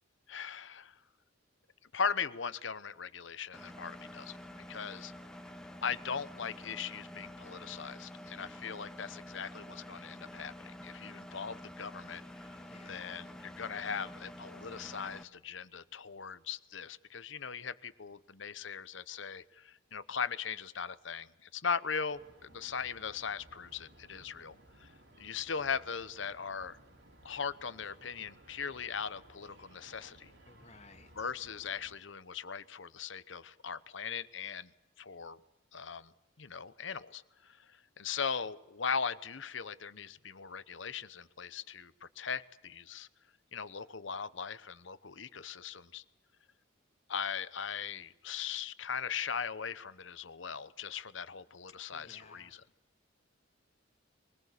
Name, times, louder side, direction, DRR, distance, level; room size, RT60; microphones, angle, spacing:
voice 1, 0.3-1.0 1.9-4.4 4.7-5.1 5.8-12.6 12.8-24.9 25.2-26.8 27.2-30.3 31.1-34.7 35.0-35.4 35.7-36.1 36.4-43.1 43.5-46.0 47.1-52.6, left 6 dB, 65° left, 15 dB, 0.9 m, -39 dB
Engine, 3.5-15.2, left 1 dB, 5° left, 1.2 m, -48 dB
voice 2, 12.5-13.3 30.5-31.1 51.9-52.6, left 3 dB, 35° left, 6 dB, 2.3 m, -57 dB
sound 1, 22.1-32.0, right 1 dB, 65° right, 4.9 m, -59 dB
23.0 x 20.5 x 8.3 m, 0.93 s
head